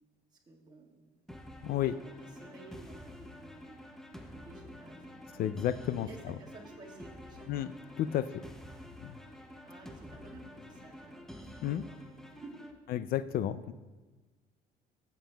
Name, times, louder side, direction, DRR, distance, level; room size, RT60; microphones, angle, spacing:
voice 1, 0.5-1.5 2.3-3.8 4.1-5.2 6.0-7.5 8.0-8.2 9.6-12.0 12.2-12.7, right 3 dB, 25° right, -3 dB, 1.6 m, -53 dB
sound 1, 1.3-12.7, left 1 dB, 5° left, 0.6 m, -49 dB
voice 2, 1.6-2.0 5.3-6.3 7.5-7.7 8.0-8.4 9.0-9.2 11.5-11.8 12.9-13.7, left 11 dB, 60° left, 15 dB, 0.4 m, -32 dB
14.5 x 7.1 x 2.3 m, 1.3 s
cardioid pair, 110°, 17 cm